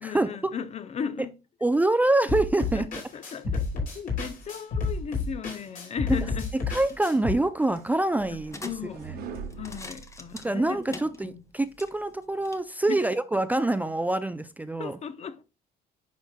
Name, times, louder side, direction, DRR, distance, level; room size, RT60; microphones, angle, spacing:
voice 1, 0.0-1.3 2.7-6.5 8.6-9.0 9.5-11.4 12.9-13.1 14.8-15.4, left 7 dB, 40° left, 0.6 m, -36 dB
voice 2, 1.6-2.9 6.7-8.6 10.4-15.0, right 2 dB, 10° right, 0.4 m, -25 dB
sound 1, 2.3-7.3, left 4 dB, 55° left, 3.2 m, -31 dB
sound 2, 6.8-12.6, left 2 dB, 15° left, 0.9 m, -47 dB
sound 3, 7.2-10.8, right 6 dB, 65° right, 1.2 m, -43 dB
10.5 x 4.2 x 2.2 m
cardioid pair, 110°, 17 cm